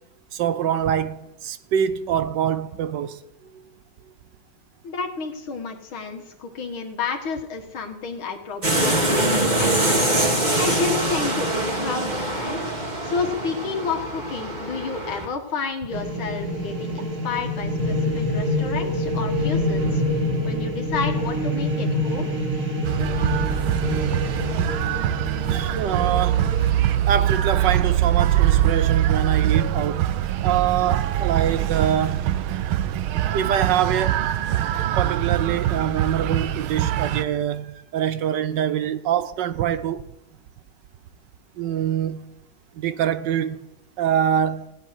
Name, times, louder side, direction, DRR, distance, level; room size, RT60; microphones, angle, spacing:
voice 1, 0.3-3.2 25.5-26.5 27.1-30.1 30.4-32.3 33.3-34.2 35.0-40.0 41.6-42.3 42.8-43.6 44.0-44.7, right 9 dB, 70° right, 1.2 m, -24 dB
voice 2, 4.8-10.1 10.6-12.7 13.0-20.0 20.4-22.3, left 5 dB, 75° left, 2.5 m, -30 dB
sound 1, 8.6-15.3, right 1 dB, 20° right, 2.3 m, -24 dB
sound 2, 15.9-26.7, left 1 dB, 45° right, 4.8 m, -26 dB
sound 3, 22.8-37.3, right 12 dB, 90° right, 1.6 m, -23 dB
17.0 x 7.3 x 9.6 m
omnidirectional pair, 2.2 m